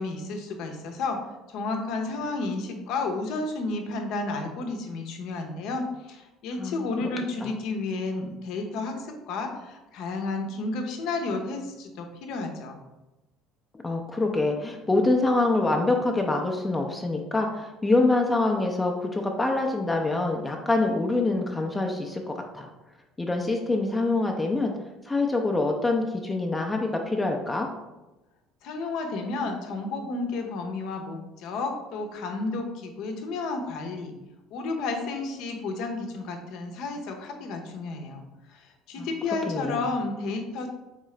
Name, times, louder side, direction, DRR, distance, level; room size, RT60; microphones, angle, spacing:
voice 1, 0.0-12.8 28.6-34.1 34.5-38.2 38.5-40.7, left 3 dB, 70° left, 4 dB, 0.7 m, -32 dB
voice 2, 13.8-22.7 23.2-24.7 25.0-27.7 39.0-39.1 39.5-39.8, left 2 dB, 15° left, 2 dB, 0.5 m, -25 dB
3.7 x 3.7 x 3.2 m, 1.0 s
supercardioid pair, 95°, 0 cm